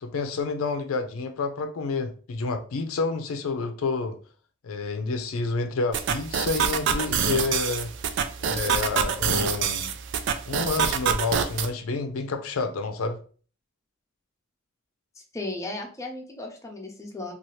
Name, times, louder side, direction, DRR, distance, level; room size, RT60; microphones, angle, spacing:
voice 1, 0.0-4.2 4.6-7.9 8.4-9.9 10.5-13.2, left 4 dB, 85° left, 0.4 m, -29 dB
sound 1, 5.9-11.7, right 7 dB, 60° right, 0.3 m, -26 dB
voice 2, 15.3-17.3, left 2 dB, 15° left, 0.6 m, -35 dB
2.7 x 2.3 x 3.1 m
head